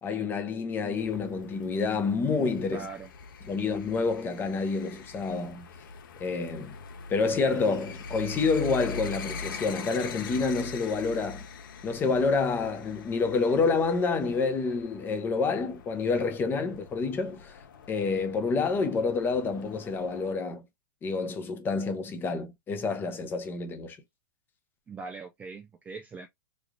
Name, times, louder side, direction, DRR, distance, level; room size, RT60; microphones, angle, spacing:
voice 1, 0.0-2.9 3.5-5.7 6.2-6.7 7.1-11.5 11.8-17.6 17.9-20.6 21.0-24.0, left 4 dB, 20° left, 0.8 m, -28 dB
sound 1, 1.0-20.3, left 4 dB, 75° left, 0.8 m, -43 dB
voice 2, 2.7-3.1 24.9-26.3, right 4 dB, 15° right, 0.4 m, -41 dB
3.3 x 2.3 x 3.7 m
hypercardioid pair, 140°, 11 cm